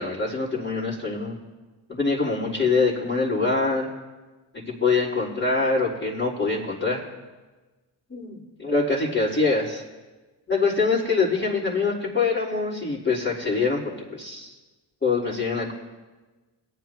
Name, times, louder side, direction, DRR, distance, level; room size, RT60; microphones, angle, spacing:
voice 1, 0.0-1.3 1.9-3.9 4.6-7.0 8.1-9.8 10.5-13.8 14.1-14.5 15.0-15.7, left 4 dB, 25° left, -10 dB, 4.1 m, -24 dB
21.0 x 9.9 x 3.0 m, 1.2 s
supercardioid pair, 50°, 48 cm